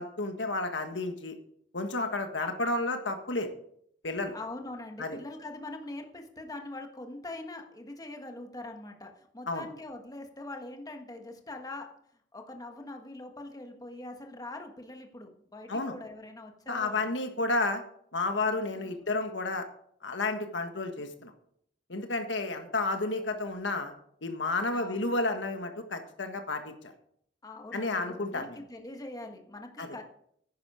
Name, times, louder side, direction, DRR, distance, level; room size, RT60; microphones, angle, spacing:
voice 1, 0.0-1.3 1.7-3.5 4.0-4.3 5.0-5.2 9.5-9.7 15.7-15.9 16.7-17.8 18.1-19.7 20.0-21.3 21.9-23.9 24.2-26.9 27.7-28.6 29.8-29.9, left 2 dB, 85° left, 6 dB, 1.5 m, -31 dB
voice 2, 4.3-11.9 12.3-17.1 18.8-18.9 24.7-25.1 27.4-30.0, left 2 dB, 20° left, 4 dB, 1.4 m, -43 dB
10.5 x 10.0 x 4.9 m, 0.68 s
head